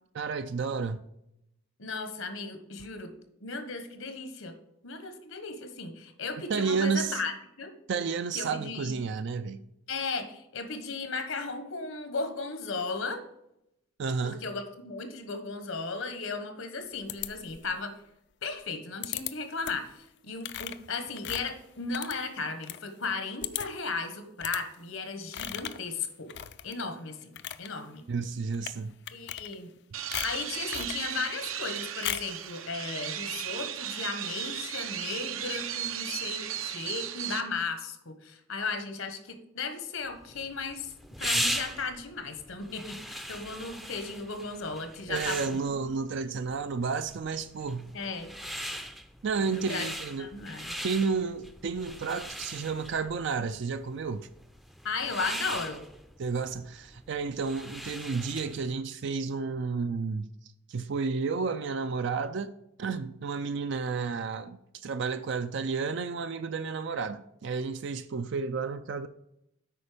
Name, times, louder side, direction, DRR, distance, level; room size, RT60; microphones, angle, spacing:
voice 1, 0.1-1.0 6.5-7.2 7.9-9.6 14.0-14.4 28.1-28.9 45.1-47.9 49.2-50.3 50.8-54.3 56.2-60.3 60.7-62.5 62.8-69.1, right 5 dB, 55° right, 0.4 m, -31 dB
voice 2, 1.8-3.1 3.4-4.5 4.8-7.7 8.3-9.0 9.9-13.2 14.2-17.9 18.4-26.3 26.6-27.3 27.6-28.0 29.1-29.7 30.2-40.9 41.2-45.6 47.9-48.3 49.5-49.9 50.2-50.8 54.8-55.9, left 4 dB, 75° left, 1.3 m, -36 dB
sound 1, 17.1-17.8 19.0-19.3 19.6-19.9 20.4-22.8 23.1-23.2 23.4-23.9 24.4-24.6 25.3-25.9 26.3-26.9 27.2-27.7 28.5-28.8 29.1-29.8 30.1-31.0 32.0-32.4, left 12 dB, 55° left, 0.4 m, -37 dB
sound 2, 29.9-37.4, right 10 dB, 75° right, 0.7 m, -36 dB
sound 3, 40.2-58.7, equal, ahead, 0.5 m, -39 dB
8.4 x 5.2 x 5.0 m
head